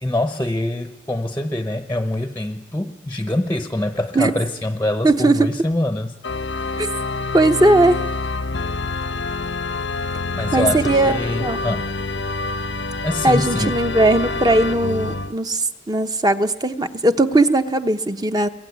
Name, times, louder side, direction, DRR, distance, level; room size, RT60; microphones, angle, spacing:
voice 1, 0.0-6.1 10.4-11.9 13.0-13.7, left 1 dB, 10° left, 8 dB, 0.7 m, -24 dB
voice 2, 5.0-5.5 6.8-6.9 7.3-8.0 10.5-11.6 13.2-18.5, right 2 dB, 20° right, 9 dB, 0.8 m, -18 dB
Organ, 6.2-15.3, left 3 dB, 85° left, 0.8 m, -26 dB
23.5 x 22.5 x 9.4 m, 1.2 s
head